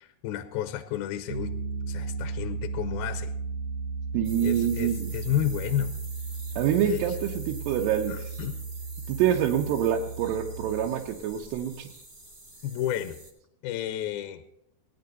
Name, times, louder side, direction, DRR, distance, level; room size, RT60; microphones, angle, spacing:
voice 1, 0.0-1.6 1.9-3.3 4.4-5.9 6.8-7.0 8.1-8.6 12.6-13.2 13.6-14.4, left 11 dB, 80° left, 10 dB, 2.4 m, -31 dB
Piano, 1.3-10.9, right 4 dB, 50° right, 1.7 m, -35 dB
voice 2, 4.1-5.1 6.6-8.3 9.1-11.9, right 9 dB, 85° right, 1 dB, 2.9 m, -26 dB
sound 1, 4.2-13.3, right 2 dB, 25° right, 0.9 m, -47 dB
19.5 x 10.5 x 4.0 m, 0.75 s
omnidirectional pair, 4.7 m